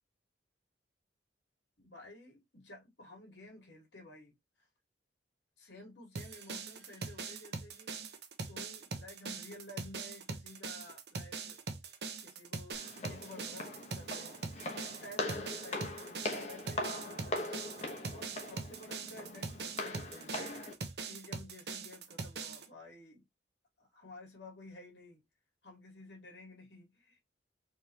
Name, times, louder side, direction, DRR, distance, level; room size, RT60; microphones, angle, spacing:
voice 1, 1.8-4.4 5.6-8.1 8.5-11.6 12.2-14.4 14.8-17.7 18.1-20.5 21.1-23.3 23.8-25.2 25.6-27.2, left 1 dB, 80° left, 2.3 m, -53 dB
sound 1, 6.2-22.7, right 4 dB, 60° right, 0.9 m, -42 dB
Walk footsteps, 12.7-20.7, left 2 dB, 35° left, 0.9 m, -41 dB
4.3 x 3.3 x 2.8 m
head